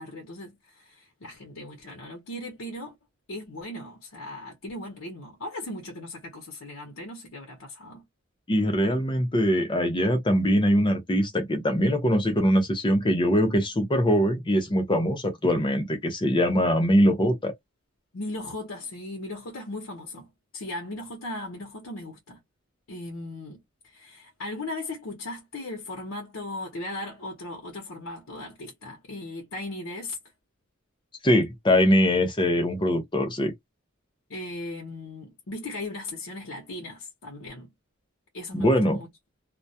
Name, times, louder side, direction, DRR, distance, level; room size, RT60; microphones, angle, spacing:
voice 1, 0.0-2.9 3.3-8.0 18.1-20.3 20.5-22.4 22.9-30.2 34.3-37.7 38.3-39.1, left 2 dB, 85° left, 0.8 m, -37 dB
voice 2, 8.5-17.5 31.2-33.5 38.5-39.0, equal, 25° left, 0.6 m, -22 dB
2.2 x 2.1 x 2.7 m
head